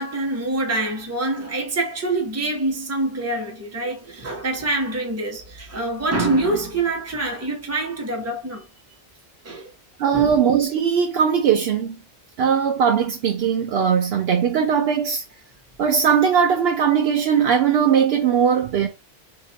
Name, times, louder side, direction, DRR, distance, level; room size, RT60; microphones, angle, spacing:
voice 1, 0.0-8.7 9.4-9.7 10.1-10.4, right 2 dB, 15° right, 0.8 m, -25 dB
voice 2, 10.0-12.0 12.4-15.2 15.8-18.9, right 7 dB, 75° right, 0.8 m, -19 dB
2.9 x 2.4 x 3.9 m
omnidirectional pair, 1.1 m